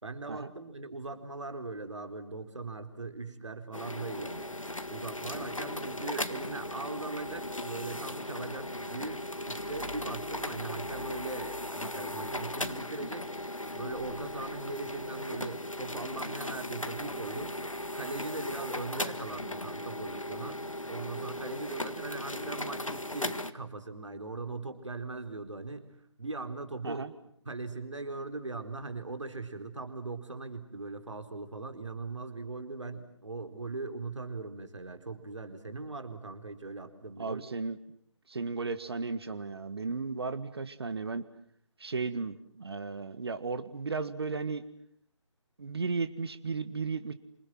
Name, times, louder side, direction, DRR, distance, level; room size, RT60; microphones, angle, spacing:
voice 1, 0.0-4.5 4.9-13.3 13.7-17.6 17.9-20.6 20.9-25.8 26.2-27.1 27.5-37.4, right 3 dB, 70° right, 8 dB, 4.3 m, -40 dB
sound 1, 3.7-23.5, left 1 dB, 90° left, 1.8 m, -37 dB
voice 2, 37.2-37.8 38.3-41.3 41.8-44.6 45.6-47.1, right 4 dB, 50° right, 13 dB, 1.7 m, -35 dB
29.0 x 27.0 x 7.6 m, 0.65 s
figure-of-eight pair, 150°, 16 cm